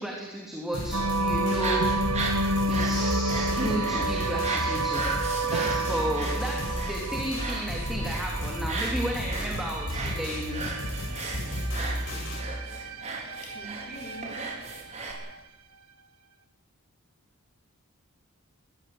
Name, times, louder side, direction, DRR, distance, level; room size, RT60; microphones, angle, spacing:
voice 1, 0.0-1.8 2.7-10.6, right 1 dB, ahead, -2 dB, 3.2 m, -33 dB
sound 1, 0.7-12.4, equal, 65° left, 7.8 m, -33 dB
sound 2, 0.9-15.4, right 2 dB, 85° right, 1.4 m, -32 dB
sound 3, 1.5-15.1, right 3 dB, 35° right, 5.1 m, -36 dB
voice 2, 13.4-14.5, left 1 dB, 35° left, 1 dB, 3.8 m, -43 dB
22.5 x 16.5 x 8.0 m, 1.1 s
head